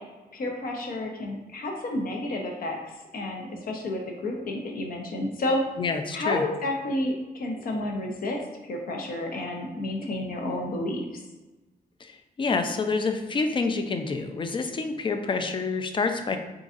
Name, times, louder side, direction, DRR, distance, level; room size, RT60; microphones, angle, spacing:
voice 1, 0.3-2.8 3.1-5.6 6.1-8.4 8.7-11.0, left 1 dB, 60° left, 1 dB, 0.8 m, -30 dB
voice 2, 5.8-6.4 12.0-16.4, left 4 dB, 30° left, 6 dB, 0.4 m, -28 dB
3.8 x 3.8 x 2.5 m, 1.1 s
cardioid pair, 120°, 17 cm